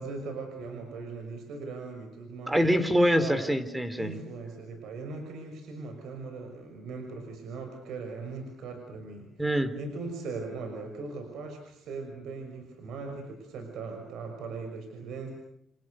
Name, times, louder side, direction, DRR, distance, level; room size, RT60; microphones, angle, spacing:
voice 1, 0.0-2.7 3.2-3.4 3.9-9.3 9.7-15.3, right 4 dB, 80° right, 5 dB, 6.2 m, -39 dB
voice 2, 2.5-4.2 9.4-9.7, equal, 10° right, 10 dB, 4.1 m, -25 dB
30.0 x 28.0 x 6.6 m, 0.73 s
cardioid pair, 90°, 0 cm